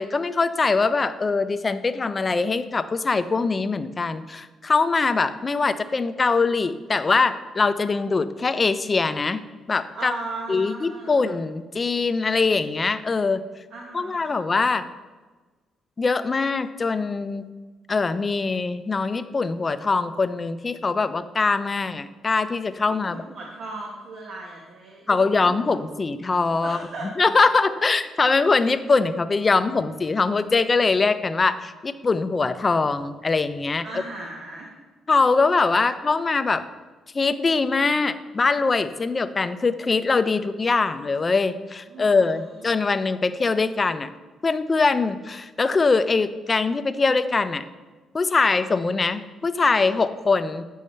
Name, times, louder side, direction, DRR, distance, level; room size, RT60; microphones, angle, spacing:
voice 1, 0.0-9.4 9.7-10.1 10.5-13.4 13.9-14.9 16.0-17.4 17.9-23.2 25.1-26.8 27.2-33.8 35.1-36.6 37.1-44.1 44.4-47.6 48.1-50.6, left 4 dB, 30° left, 12 dB, 0.4 m, -22 dB
voice 2, 9.9-11.2 13.7-14.3 23.0-25.8 26.6-27.1 33.8-34.7 41.9-42.4, right 2 dB, 65° right, -1 dB, 1.1 m, -37 dB
8.7 x 5.5 x 3.2 m, 1.3 s
cardioid pair, 90°, 0 cm